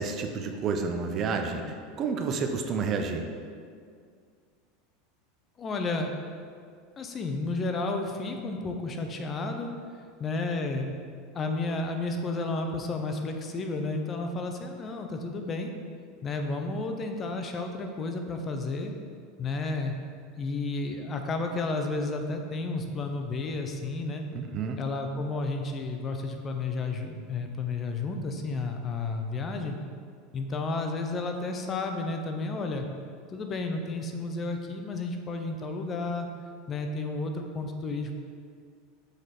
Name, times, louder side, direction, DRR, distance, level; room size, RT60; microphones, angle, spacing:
voice 1, 0.0-3.3 24.3-24.8, right 5 dB, 35° right, 5 dB, 0.6 m, -30 dB
voice 2, 5.6-6.1 7.0-9.7 10.2-11.0 11.3-15.7 16.2-18.9 19.4-20.0 20.4-24.2 24.8-29.8 30.3-32.9 33.3-36.3 36.7-38.1, left 3 dB, 25° left, 5 dB, 0.6 m, -32 dB
6.5 x 4.7 x 4.2 m, 2.1 s
supercardioid pair, 130°, 0 cm